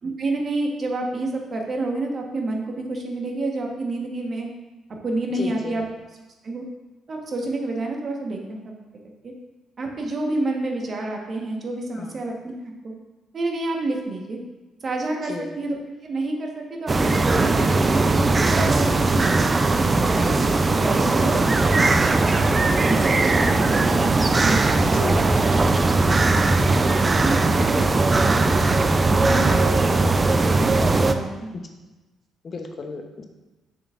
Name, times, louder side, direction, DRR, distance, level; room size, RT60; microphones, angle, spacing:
voice 1, 0.0-4.5 5.0-5.8 6.4-6.6 7.1-8.6 9.2-9.3 9.8-12.9 13.3-14.4 14.8-18.0 18.5-19.2 19.5-20.3 20.7-22.0 22.8-25.4 26.7-28.6 29.1-29.9 30.4-31.6, right 2 dB, 50° right, 1 dB, 1.3 m, -29 dB
voice 2, 5.3-5.8 11.9-12.1 15.2-15.5 18.5-18.7 23.2-23.3 24.9-25.2 29.5-29.8 32.4-33.2, left 4 dB, 50° left, 5 dB, 0.8 m, -34 dB
sound 1, 16.9-31.1, right 3 dB, 30° right, 0.5 m, -19 dB
6.5 x 6.0 x 2.5 m, 1.1 s
supercardioid pair, 60°, 0 cm